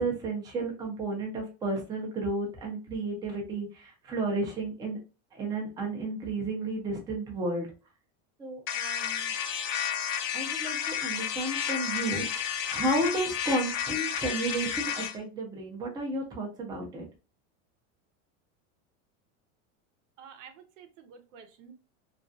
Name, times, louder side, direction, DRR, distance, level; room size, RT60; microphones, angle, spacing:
voice 1, 0.0-5.0 5.3-7.7 8.4-9.3 10.3-17.1, right 2 dB, 10° right, 0 dB, 0.4 m, -32 dB
sound 1, 8.7-15.2, left 9 dB, 45° left, 0.5 m, -31 dB
voice 2, 20.2-21.7, right 7 dB, 80° right, 6 dB, 0.7 m, -50 dB
2.4 x 2.2 x 2.5 m, 0.32 s
supercardioid pair, 145°, 37 cm